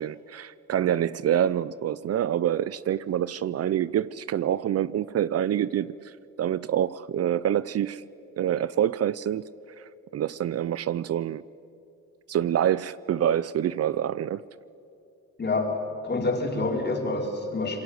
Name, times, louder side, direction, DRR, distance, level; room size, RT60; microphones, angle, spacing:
voice 1, 0.0-5.9 6.4-8.0 8.4-9.5 9.8-11.4 12.3-14.4, right 10 dB, 55° right, 18 dB, 0.6 m, -26 dB
voice 2, 15.4-17.8, left 2 dB, 35° left, 1 dB, 4.7 m, -27 dB
27.0 x 22.0 x 8.1 m, 2.6 s
cardioid pair, 90°, 30 cm